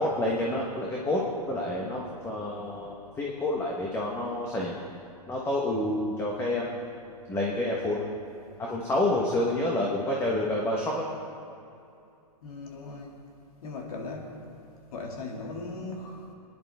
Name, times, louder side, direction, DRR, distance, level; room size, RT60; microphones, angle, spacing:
voice 1, 0.0-4.7 5.3-6.7 7.3-8.0 8.7-11.1, left 1 dB, 10° left, -3 dB, 1.2 m, -28 dB
voice 2, 12.4-13.1 13.6-14.4 14.9-16.3, left 3 dB, 60° left, 0 dB, 2.5 m, -38 dB
22.0 x 10.5 x 3.6 m, 2.6 s
hypercardioid pair, 145°, 20 cm